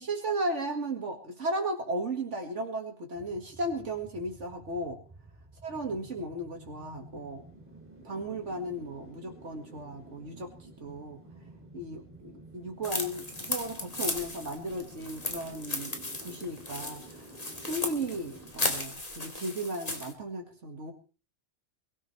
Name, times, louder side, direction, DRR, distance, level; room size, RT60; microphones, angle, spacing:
voice 1, 0.1-5.0 5.6-7.4 8.0-11.2 11.7-16.0 16.2-17.2 17.5-20.9, right 1 dB, 80° right, 2 dB, 2.3 m, -35 dB
wind synth high altitude, 3.1-18.8, right 2 dB, 10° right, 2.6 m, -51 dB
sound 1, 12.8-20.1, left 2 dB, 30° left, 2.4 m, -36 dB
23.0 x 13.5 x 3.3 m, 0.37 s
omnidirectional pair, 1.2 m